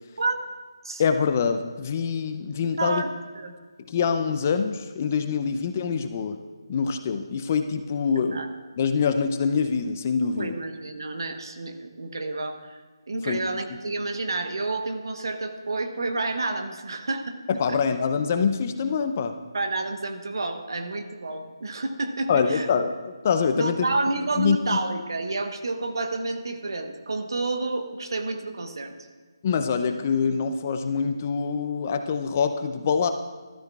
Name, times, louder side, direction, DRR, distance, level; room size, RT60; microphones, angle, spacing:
voice 1, 1.0-3.0 3.9-6.4 6.7-8.4 8.8-10.5 13.3-13.4 17.5-19.3 22.3-23.8 24.4-24.8 29.4-33.1, left 6 dB, 30° left, 8 dB, 0.5 m, -25 dB
voice 2, 2.8-3.5 8.3-8.5 10.4-12.8 13.1-17.4 17.7-17.8 19.5-22.7 23.5-29.1, right 2 dB, 65° right, 6 dB, 1.1 m, -29 dB
12.5 x 12.5 x 2.4 m, 1.4 s
figure-of-eight pair, 155°, 2 cm